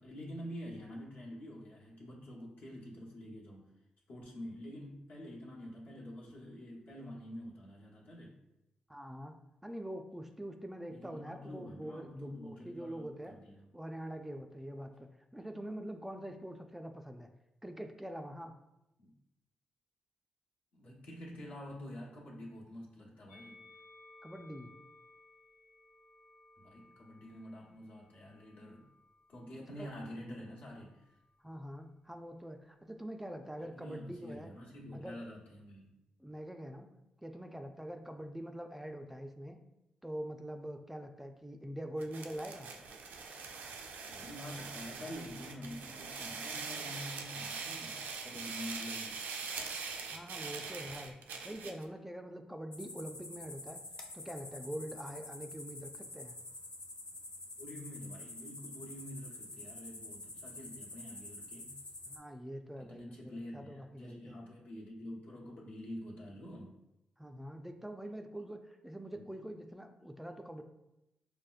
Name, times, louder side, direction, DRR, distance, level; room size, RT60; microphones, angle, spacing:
voice 1, 0.0-3.7 4.1-8.4 10.9-13.7 19.0-19.1 20.7-23.6 26.6-28.9 29.3-31.2 33.6-35.9 44.1-49.2 57.6-61.8 62.8-66.8 69.1-69.2, equal, 70° left, -4 dB, 1.0 m, -47 dB
voice 2, 8.9-13.4 13.7-15.1 15.3-17.3 17.6-18.5 24.2-24.7 29.8-29.9 31.4-34.5 34.9-35.2 36.2-36.9 37.2-39.6 40.0-42.7 50.1-53.8 54.1-56.4 62.1-64.4 67.2-70.6, right 1 dB, 10° right, 5 dB, 0.3 m, -44 dB
Musical instrument, 23.3-29.7 30.5-31.5, left 2 dB, 85° left, 0.6 m, -61 dB
sound 1, 42.0-51.8, right 5 dB, 80° right, 0.4 m, -43 dB
sound 2, 52.7-62.2, left 2 dB, 35° left, 0.8 m, -48 dB
4.9 x 2.1 x 2.4 m, 0.90 s
supercardioid pair, 55°, 3 cm